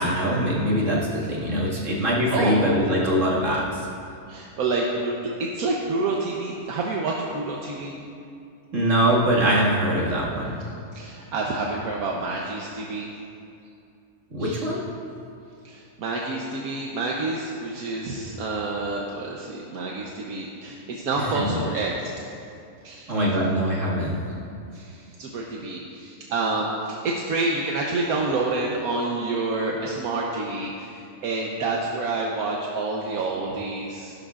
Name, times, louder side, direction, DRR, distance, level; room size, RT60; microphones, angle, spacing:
voice 1, 0.0-3.9 8.7-10.6 14.3-14.8 21.2-21.6 23.1-24.2, equal, 60° right, -6 dB, 2.4 m, -23 dB
voice 2, 4.3-5.1 5.4-8.0 10.9-13.1 14.4-14.7 15.6-22.3 22.8-23.1 24.7-34.1, right 3 dB, 80° right, -2 dB, 1.4 m, -28 dB
15.5 x 12.0 x 2.5 m, 2.6 s
omnidirectional pair, 1.5 m